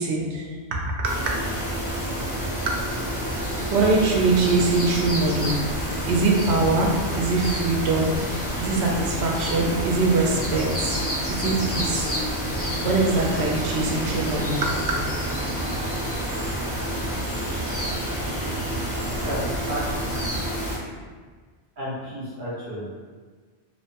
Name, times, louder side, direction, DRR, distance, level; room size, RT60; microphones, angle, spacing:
voice 1, 0.0-1.3 2.6-3.1 3.4-5.6 6.0-11.0 11.3-12.1 12.8-15.0, right 3 dB, 80° right, -1 dB, 0.8 m, -23 dB
sound 1, 1.0-20.8, equal, 15° left, 0.7 m, -28 dB
voice 2, 19.1-20.1 21.8-23.0, equal, 50° right, -10 dB, 1.2 m, -32 dB
2.8 x 2.1 x 2.7 m, 1.5 s
omnidirectional pair, 1.1 m